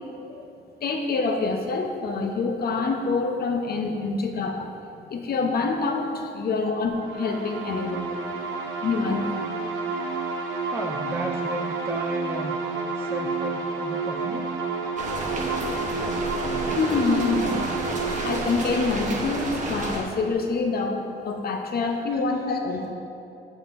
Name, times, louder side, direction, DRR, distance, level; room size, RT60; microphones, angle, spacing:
voice 1, 0.8-4.7 4.9-8.2 8.8-9.3 16.6-17.5 18.2-22.9, left 4 dB, 50° left, 3 dB, 0.7 m, -26 dB
sound 1, 7.0-20.5, right 4 dB, 85° right, 0.7 m, -30 dB
voice 2, 10.2-12.6 12.9-14.5, right 2 dB, 10° right, 1 dB, 0.4 m, -34 dB
sound 2, 15.0-20.0, right 2 dB, 40° right, 0.9 m, -31 dB
7.2 x 6.4 x 2.5 m, 2.6 s
cardioid pair, 90°, 20 cm